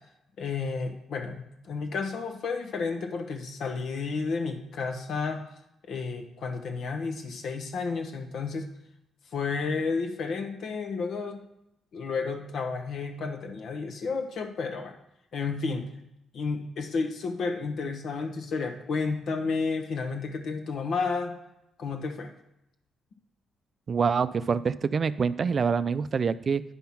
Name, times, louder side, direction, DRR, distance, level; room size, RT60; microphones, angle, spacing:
voice 1, 0.4-5.4 5.9-8.7 9.3-11.4 11.9-14.9 15.3-15.9 16.3-21.4 21.8-22.3, left 4 dB, 65° left, 5 dB, 1.1 m, -31 dB
voice 2, 23.9-26.6, right 5 dB, 40° right, 14 dB, 0.4 m, -26 dB
10.0 x 5.7 x 5.8 m, 0.83 s
cardioid pair, 120°, 0 cm